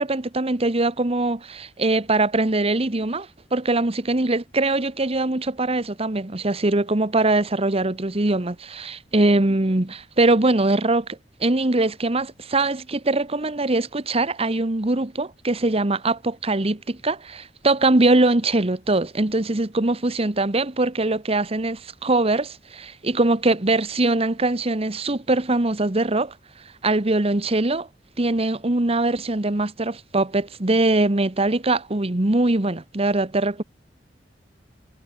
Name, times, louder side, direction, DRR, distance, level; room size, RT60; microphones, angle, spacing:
voice 1, 0.0-26.3 26.8-27.9 28.2-33.6, right 2 dB, 35° right, 1.2 m, -22 dB
head